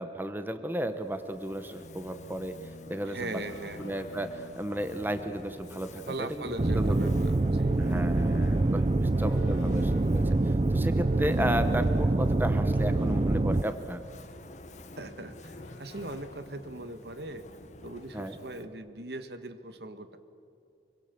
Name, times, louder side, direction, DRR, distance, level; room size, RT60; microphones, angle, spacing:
voice 1, 0.0-2.5 2.9-3.4 3.8-7.0 7.8-14.0 18.1-18.3, right 1 dB, 10° right, 8 dB, 1.0 m, -34 dB
Fire, 0.9-18.8, left 1 dB, 40° left, 1.4 m, -50 dB
sound 1, 1.6-18.1, left 1 dB, 80° left, 1.8 m, -50 dB
voice 2, 3.0-3.8 6.1-7.8 15.0-17.5 17.8-20.2, right 2 dB, 65° right, 10 dB, 1.5 m, -40 dB
sound 2, 6.6-13.6, right 2 dB, 30° right, 0.5 m, -25 dB
25.5 x 24.5 x 6.9 m, 2.7 s
head